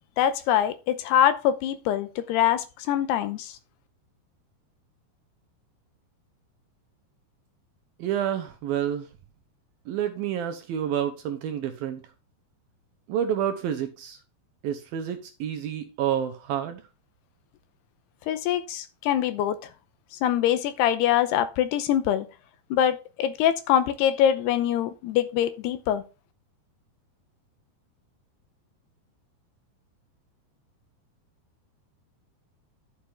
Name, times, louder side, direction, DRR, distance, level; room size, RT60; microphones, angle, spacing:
voice 1, 0.2-3.6 18.3-19.6 20.1-22.3 22.7-26.0, left 10 dB, 80° left, 2.6 m, -24 dB
voice 2, 8.0-9.1 9.9-12.0 13.1-14.2 14.6-16.8, right 9 dB, 70° right, 2.4 m, -29 dB
12.0 x 7.4 x 3.4 m
omnidirectional pair, 5.1 m